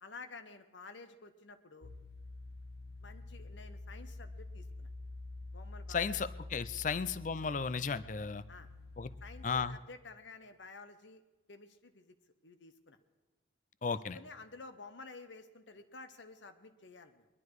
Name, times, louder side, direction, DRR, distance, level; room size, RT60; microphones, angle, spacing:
voice 1, 0.0-1.9 3.0-4.9 5.5-6.2 6.9-7.0 8.5-8.7 9.2-11.2 11.5-12.1 12.4-13.0 13.9-17.3, left 3 dB, 75° left, 9 dB, 1.0 m, -52 dB
sound 1, 1.8-9.5, left 2 dB, 60° left, 1.2 m, -47 dB
voice 2, 5.9-8.4 9.0-9.1 9.4-9.8 13.8-14.2, left 5 dB, 40° left, 16 dB, 0.5 m, -34 dB
21.0 x 11.5 x 4.8 m, 1.1 s
head